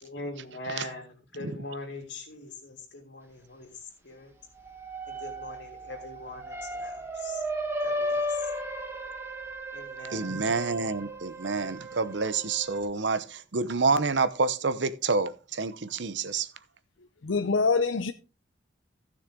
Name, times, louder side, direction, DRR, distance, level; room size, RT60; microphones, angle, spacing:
voice 1, 0.0-3.7 4.0-4.3 5.1-7.4 7.8-8.4 9.7-10.3, left 2 dB, 70° left, 3.2 m, -42 dB
sound 1, 4.6-12.8, equal, 10° right, 1.3 m, -35 dB
voice 2, 10.1-16.5, right 4 dB, 70° right, 0.8 m, -28 dB
voice 3, 17.2-18.1, left 4 dB, 90° left, 0.6 m, -24 dB
15.0 x 6.6 x 3.7 m
head